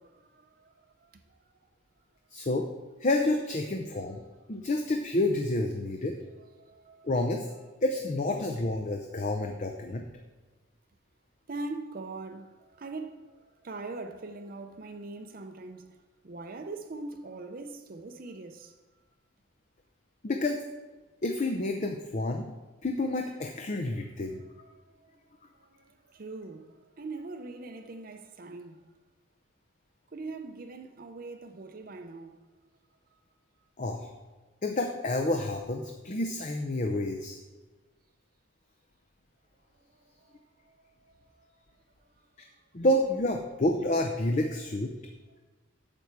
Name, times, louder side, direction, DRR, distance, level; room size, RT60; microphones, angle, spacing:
voice 1, 0.0-1.6 6.5-7.5 11.5-16.0 16.2-18.8 24.4-25.2 25.6-28.8 30.1-32.4 39.8-41.5 42.0-42.3, right 3 dB, 45° right, 0.6 m, -43 dB
voice 2, 2.3-2.7 3.0-4.2 4.5-6.2 7.0-7.5 7.8-10.0 20.2-20.6 21.2-22.5 22.8-24.4 33.8-34.1 34.6-37.4 42.7-44.9, left 1 dB, 40° left, 0.6 m, -29 dB
9.0 x 7.0 x 4.6 m
head